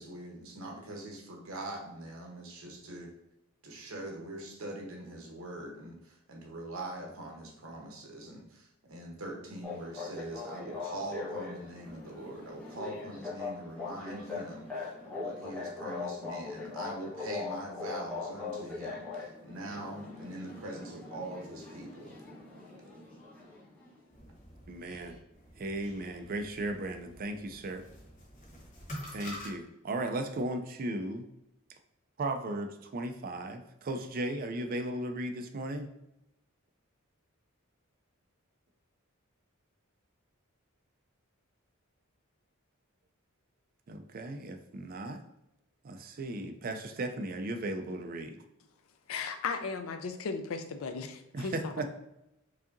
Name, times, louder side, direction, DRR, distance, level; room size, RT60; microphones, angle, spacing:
voice 1, 0.0-3.1 3.6-22.2, right 1 dB, 75° right, 0 dB, 1.0 m, -43 dB
sound 1, 9.6-24.0, left 4 dB, 5° left, 0.9 m, -41 dB
sound 2, 24.1-29.5, equal, 35° left, 0.9 m, -48 dB
voice 2, 24.7-25.2 25.6-27.8 29.1-31.3 32.2-35.9 43.9-45.2 45.8-48.4 51.3-52.0, right 1 dB, 45° right, 6 dB, 0.4 m, -36 dB
voice 3, 49.1-51.7, left 5 dB, 75° left, 8 dB, 0.4 m, -36 dB
4.8 x 2.7 x 2.6 m, 0.86 s
head